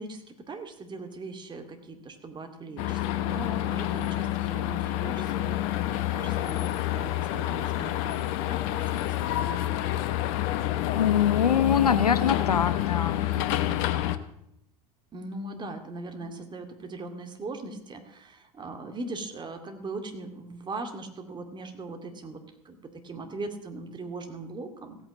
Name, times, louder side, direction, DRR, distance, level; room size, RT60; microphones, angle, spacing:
voice 1, 0.0-8.2 8.5-9.0 15.1-25.0, right 3 dB, 25° right, 6 dB, 2.2 m, -40 dB
sound 1, 2.8-14.2, left 14 dB, 55° left, 1.0 m, -28 dB
voice 2, 10.9-13.5, left 8 dB, 85° left, 14 dB, 0.8 m, -24 dB
15.5 x 9.1 x 7.4 m, 0.77 s
figure-of-eight pair, 80°, 19 cm